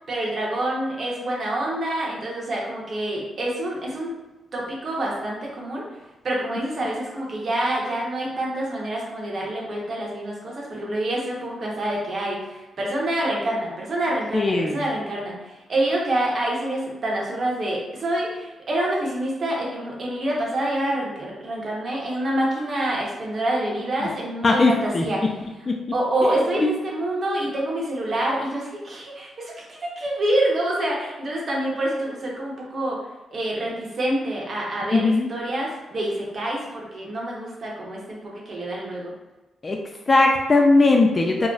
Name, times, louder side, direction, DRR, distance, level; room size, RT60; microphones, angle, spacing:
voice 1, 0.1-4.1 4.5-5.9 6.2-25.2 25.9-33.0 33.3-39.1, right 1 dB, 50° right, -3 dB, 0.9 m, -27 dB
voice 2, 14.3-14.8 24.0-24.1 24.4-25.1 25.7-25.8 26.2-26.7 34.9-35.3 39.6-39.8 40.1-41.5, left 3 dB, 30° left, 1 dB, 0.4 m, -19 dB
2.3 x 2.0 x 3.8 m, 1.1 s
cardioid pair, 80°, 0 cm